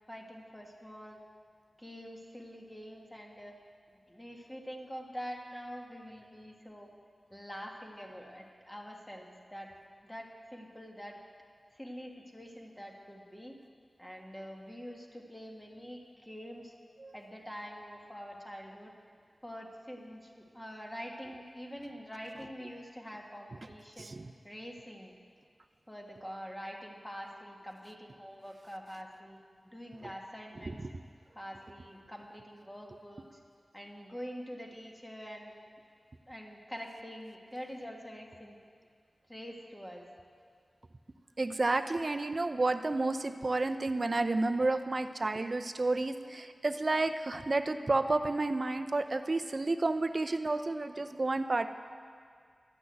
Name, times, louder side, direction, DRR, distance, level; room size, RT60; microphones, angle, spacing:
voice 1, 0.1-1.2 1.8-3.6 4.1-6.9 7.3-9.7 10.0-11.2 11.7-13.6 14.0-16.7 17.1-18.9 19.4-24.1 24.4-25.1 25.9-29.4 29.6-30.8 31.4-33.4 33.7-35.5 36.3-38.6 39.3-40.1, equal, 10° left, 0 dB, 1.7 m, -45 dB
voice 2, 24.0-24.3 41.4-51.7, right 2 dB, 45° right, 9 dB, 0.6 m, -31 dB
12.0 x 6.3 x 9.1 m, 2.1 s
wide cardioid pair, 65°, 0 cm